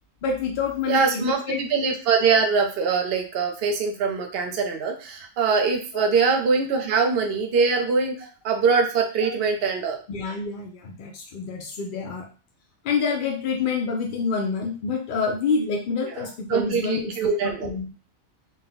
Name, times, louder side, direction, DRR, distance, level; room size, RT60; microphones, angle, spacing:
voice 1, 0.2-1.6 5.9-6.1 10.1-12.3 12.8-17.1 17.4-17.9, left 5 dB, 65° left, 2 dB, 0.5 m, -27 dB
voice 2, 0.9-10.0 16.0-17.7, right 5 dB, 55° right, 3 dB, 0.8 m, -23 dB
3.9 x 2.2 x 3.9 m, 0.36 s
omnidirectional pair, 1.3 m